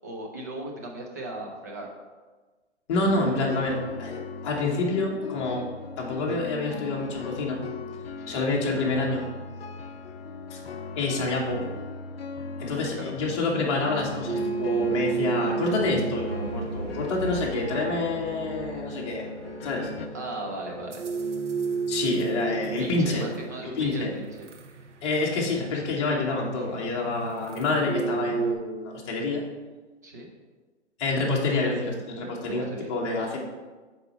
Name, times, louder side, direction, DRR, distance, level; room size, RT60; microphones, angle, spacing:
voice 1, 0.0-1.9 5.6-5.7 8.2-8.4 12.8-13.1 20.1-21.1 22.6-24.5 30.0-30.3 32.4-32.9, right 1 dB, 15° right, 0 dB, 0.4 m, -37 dB
voice 2, 2.9-5.7 6.0-7.6 8.3-9.2 10.5-10.6 11.0-11.7 12.6-19.3 19.6-19.9 21.9-23.2 23.6-24.1 25.0-29.4 31.0-33.4, left 2 dB, 25° left, -2 dB, 1.1 m, -27 dB
sound 1, 3.0-20.1, left 4 dB, 55° left, 0.6 m, -39 dB
sound 2, 14.3-28.5, right 5 dB, 80° right, 0.8 m, -33 dB
6.6 x 4.3 x 4.4 m, 1.3 s
figure-of-eight pair, 140°, 35 cm